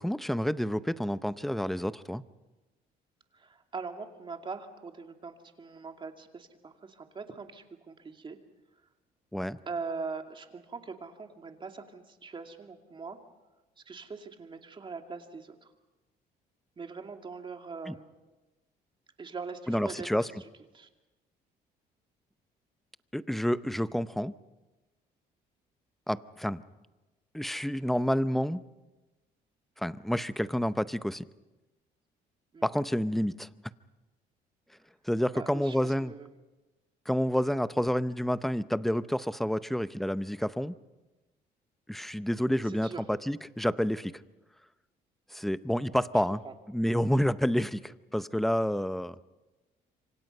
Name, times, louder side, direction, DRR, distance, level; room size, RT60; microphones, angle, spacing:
voice 1, 0.0-2.2 9.3-9.6 17.9-18.0 19.7-20.3 23.1-24.3 26.1-26.6 27.3-28.6 29.8-31.3 32.6-33.5 35.0-36.1 37.1-40.8 41.9-44.2 45.3-46.4 46.7-49.2, equal, ahead, 14 dB, 0.7 m, -29 dB
voice 2, 3.3-8.4 9.7-13.2 13.8-15.7 16.8-18.2 19.2-20.2 20.7-20.9 32.5-32.7 35.3-36.3 42.6-43.0 46.1-46.5, right 4 dB, 30° right, 4 dB, 2.5 m, -42 dB
27.5 x 25.0 x 5.5 m, 1.1 s
cardioid pair, 110°, 17 cm